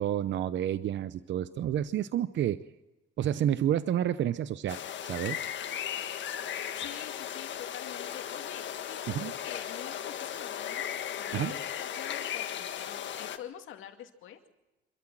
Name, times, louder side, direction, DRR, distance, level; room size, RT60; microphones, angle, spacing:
voice 1, 0.0-2.6 3.2-5.4 9.1-9.3 11.3-11.5, right 10 dB, 70° right, 14 dB, 0.7 m, -30 dB
sound 1, 4.7-13.4, left 9 dB, 65° left, 1.6 m, -36 dB
voice 2, 6.8-9.0 9.4-14.4, left 10 dB, 85° left, 5 dB, 2.4 m, -46 dB
26.5 x 13.5 x 7.5 m, 1.0 s
cardioid pair, 90°, 20 cm